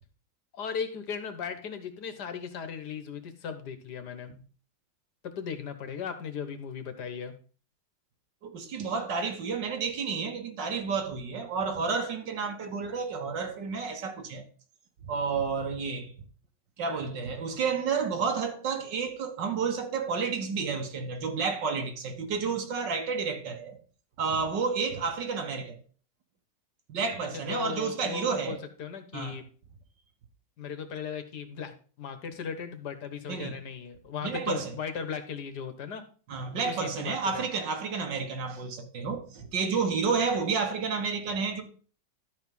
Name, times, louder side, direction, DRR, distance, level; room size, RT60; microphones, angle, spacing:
voice 1, 0.5-4.3 5.2-7.3 27.5-29.4 30.6-36.0 36.6-37.5, left 6 dB, 65° left, 1.7 m, -37 dB
voice 2, 8.4-14.4 15.0-16.1 16.8-23.8 24.2-25.8 26.9-28.6 29.1-29.4 33.3-33.6 34.2-34.8 36.3-41.6, right 5 dB, 80° right, 2.1 m, -31 dB
12.0 x 4.8 x 5.4 m
omnidirectional pair, 1.9 m